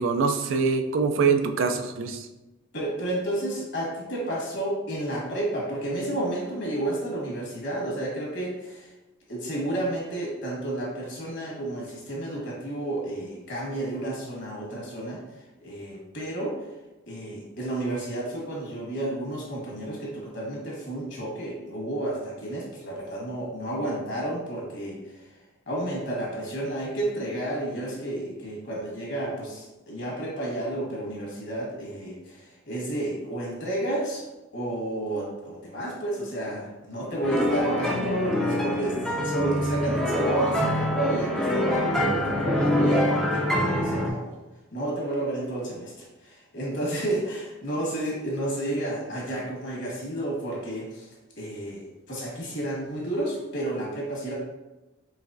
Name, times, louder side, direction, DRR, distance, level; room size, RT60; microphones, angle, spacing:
voice 1, 0.0-2.3, right 5 dB, 70° right, 6 dB, 0.4 m, -24 dB
voice 2, 2.7-8.9 9.3-15.2 15.6-16.5 17.1-25.3 25.7-34.2 34.5-39.0 39.2-44.3 44.7-51.1 51.4-54.3, right 1 dB, 60° left, -4 dB, 1.5 m, -31 dB
sound 1, 37.2-44.1, left 1 dB, 5° left, 0.5 m, -25 dB
4.8 x 3.1 x 2.6 m, 1.0 s
head